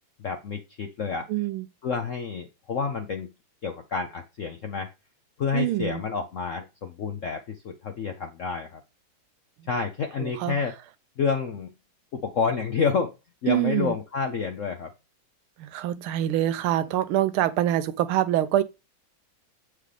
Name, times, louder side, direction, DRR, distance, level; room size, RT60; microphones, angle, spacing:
voice 1, 0.2-1.3 1.8-3.3 3.6-4.9 5.4-8.8 9.7-10.7 11.2-11.7 12.1-13.1 13.4-14.9, left 5 dB, 70° left, 0.7 m, -29 dB
voice 2, 1.3-1.7 5.5-6.0 9.6-9.7 10.2-10.6 13.5-14.0 15.6-18.6, right 12 dB, 85° right, 1.5 m, -25 dB
7.7 x 4.8 x 3.3 m
omnidirectional pair, 2.3 m